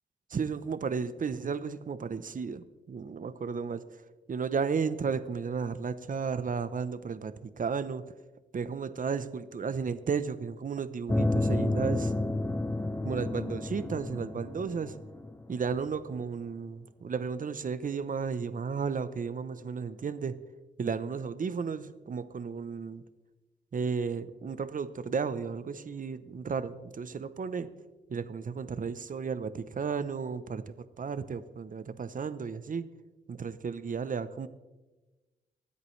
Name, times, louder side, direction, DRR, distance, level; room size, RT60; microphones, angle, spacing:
voice 1, 0.3-3.8 4.3-8.0 8.5-12.1 13.0-15.0 15.5-20.3 20.8-23.0 23.7-27.7 28.1-32.9 33.3-34.5, right 5 dB, 50° right, 13 dB, 0.7 m, -33 dB
sound 1, 11.1-16.0, left 2 dB, 10° left, 0.7 m, -31 dB
24.5 x 8.2 x 3.2 m, 1.2 s
wide cardioid pair, 100°, 18 cm